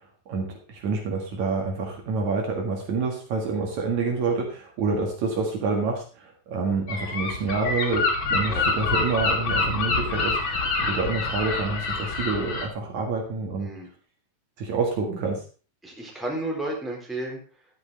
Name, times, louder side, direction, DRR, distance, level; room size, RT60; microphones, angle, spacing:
voice 1, 0.3-13.7 14.6-15.4, right 4 dB, 60° right, 1 dB, 3.0 m, -28 dB
Gull seagull, 6.9-12.7, left 3 dB, 45° left, 2.1 m, -26 dB
voice 2, 13.6-13.9 15.8-17.4, right 1 dB, ahead, -1 dB, 3.2 m, -32 dB
12.5 x 9.5 x 4.0 m, 0.37 s
omnidirectional pair, 3.9 m